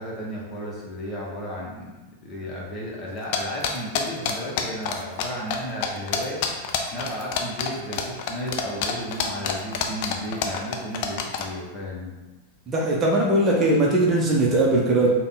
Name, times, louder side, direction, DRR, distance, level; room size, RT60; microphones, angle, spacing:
voice 1, 0.0-1.9 2.2-6.5 6.9-12.1, equal, 25° left, -4 dB, 1.0 m, -34 dB
sound 1, 3.3-5.2 5.5-5.6 5.8-11.5, left 8 dB, 45° left, 0.4 m, -26 dB
voice 2, 12.7-15.1, right 1 dB, 25° right, -3 dB, 0.7 m, -20 dB
3.6 x 2.2 x 3.9 m, 1.1 s
figure-of-eight pair, 90°, 0 cm